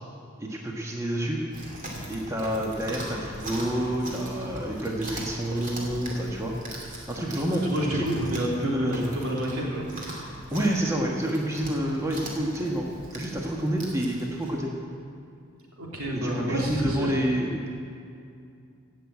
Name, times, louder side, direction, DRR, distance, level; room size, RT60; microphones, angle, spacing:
voice 1, 0.4-1.4 2.1-6.5 7.1-7.6 8.6-9.1 10.5-12.9 13.1-14.7 16.1-17.7, right 1 dB, 15° right, -1 dB, 1.4 m, -28 dB
Chewing mastication, 1.5-14.6, right 1 dB, 40° right, 2.4 m, -40 dB
voice 2, 7.6-9.8 15.8-17.1, right 1 dB, 90° right, -3 dB, 3.1 m, -29 dB
16.0 x 6.5 x 8.3 m, 2.4 s
head